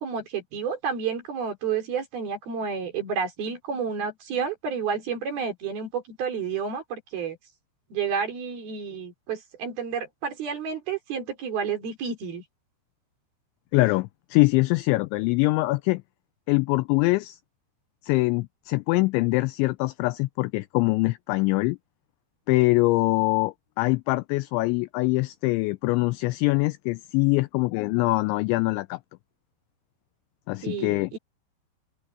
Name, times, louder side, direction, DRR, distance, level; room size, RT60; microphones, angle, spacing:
voice 1, 0.0-7.4 7.9-12.4 30.6-31.2, right 6 dB, 50° right, 5.6 m, -30 dB
voice 2, 13.7-16.0 16.5-17.4 18.0-21.8 22.5-29.0 30.5-31.1, left 23 dB, 85° left, 2.6 m, -23 dB
open air
omnidirectional pair, 5.8 m